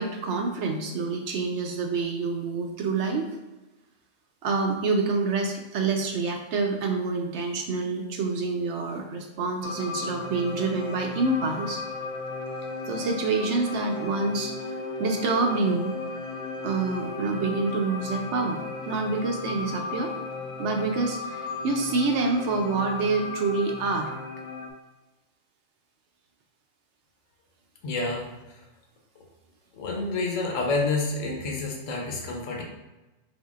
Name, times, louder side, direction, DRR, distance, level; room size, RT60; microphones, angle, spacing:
voice 1, 0.0-3.3 4.4-11.8 12.9-14.5 15.0-15.9 16.6-18.6 18.9-20.1 20.6-24.1, right 3 dB, 70° right, 3 dB, 0.8 m, -27 dB
sound 1, 9.6-24.7, left 3 dB, 65° left, 0.4 m, -35 dB
voice 2, 27.8-28.3 29.7-32.6, left 3 dB, 85° left, 0 dB, 1.1 m, -28 dB
4.4 x 3.5 x 2.4 m, 1.1 s
omnidirectional pair, 1.3 m